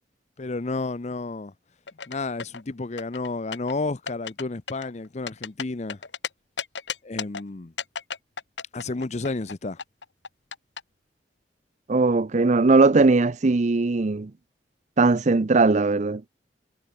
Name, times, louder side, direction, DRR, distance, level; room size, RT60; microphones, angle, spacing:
voice 1, 0.4-1.5 2.1-6.0 7.0-7.7 8.7-9.8, left 3 dB, 40° left, 0.7 m, -31 dB
sound 1, 1.9-2.6 3.0-3.7 4.1-4.4 4.7-6.3 6.6-7.4 7.8-9.5 9.8-10.8, left 6 dB, 90° left, 2.0 m, -33 dB
voice 2, 11.9-14.3 15.0-16.2, right 3 dB, 40° right, 0.6 m, -19 dB
head